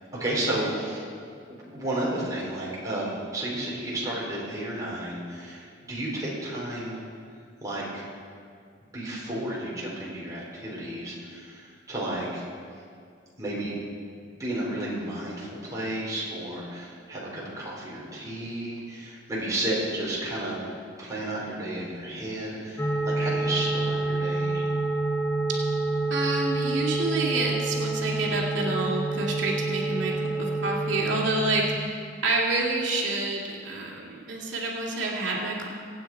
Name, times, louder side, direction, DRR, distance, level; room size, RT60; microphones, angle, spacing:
voice 1, 0.1-1.0 1.5-7.0 7.6-8.1 8.9-12.5 13.4-13.8 14.4-20.6 21.0-24.7, right 1 dB, 20° right, -6 dB, 4.1 m, -32 dB
sound 1, 22.8-31.8, right 2 dB, 15° left, 0.7 m, -28 dB
voice 2, 26.1-35.7, right 2 dB, 75° right, -2 dB, 2.3 m, -28 dB
24.5 x 8.8 x 4.5 m, 2.3 s
head